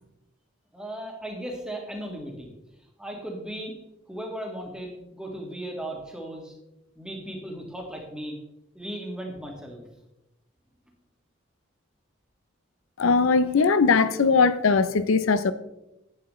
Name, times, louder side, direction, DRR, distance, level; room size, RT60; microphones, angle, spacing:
voice 1, 0.7-2.5 3.0-3.7 4.1-6.5 6.9-8.4 8.7-9.8, right 1 dB, 5° right, 1.6 m, -36 dB
voice 2, 13.0-15.5, left 4 dB, 75° left, 0.5 m, -20 dB
11.0 x 8.4 x 3.1 m
head